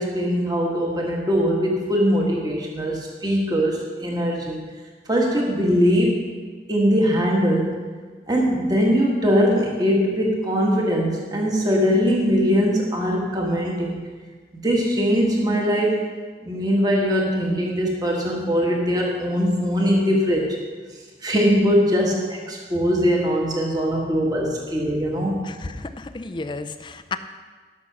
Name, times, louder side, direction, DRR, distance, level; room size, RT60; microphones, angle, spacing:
voice 1, 0.0-4.6 5.1-6.2 6.7-7.8 8.3-14.0 14.6-16.1 16.5-20.6 21.2-25.4, equal, 20° right, -1 dB, 1.5 m, -21 dB
voice 2, 25.4-27.2, left 3 dB, 25° left, 10 dB, 0.5 m, -32 dB
12.5 x 6.1 x 6.1 m, 1.5 s
head